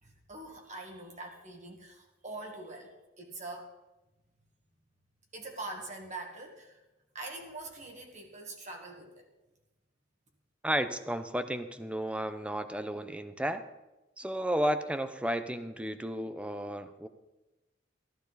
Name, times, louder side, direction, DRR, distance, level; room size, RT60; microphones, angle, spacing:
voice 1, 0.0-3.7 5.3-6.8 7.1-9.3, right 2 dB, 40° right, 2 dB, 1.9 m, -44 dB
voice 2, 10.6-13.7 14.2-17.1, equal, 5° right, 10 dB, 0.6 m, -33 dB
14.0 x 12.5 x 4.1 m, 1.0 s
head